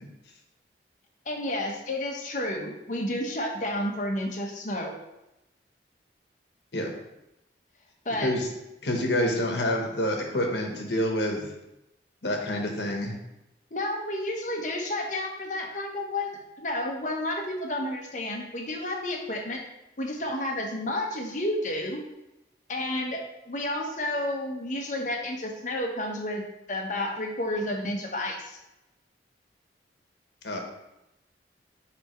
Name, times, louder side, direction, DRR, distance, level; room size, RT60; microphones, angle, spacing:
voice 1, 1.3-5.0 8.0-8.3 13.7-16.3 16.6-19.6 20.0-22.0 22.7-26.4 26.7-28.6, left 1 dB, 45° left, 1 dB, 1.0 m, -31 dB
voice 2, 8.8-11.5 12.2-13.2 30.4-30.6, left 1 dB, 75° left, 2 dB, 1.1 m, -27 dB
9.4 x 3.4 x 3.1 m, 0.92 s
head